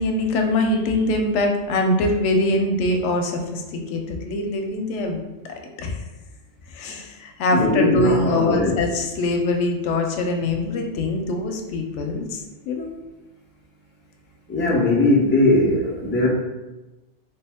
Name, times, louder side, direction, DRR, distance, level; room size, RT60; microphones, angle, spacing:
voice 1, 0.0-5.2 5.8-6.0 6.7-12.9, left 2 dB, 85° left, 3 dB, 0.9 m, -23 dB
voice 2, 7.5-8.8 14.5-16.3, left 2 dB, 15° left, -4 dB, 0.5 m, -19 dB
3.0 x 2.9 x 3.5 m, 1.1 s
omnidirectional pair, 1.2 m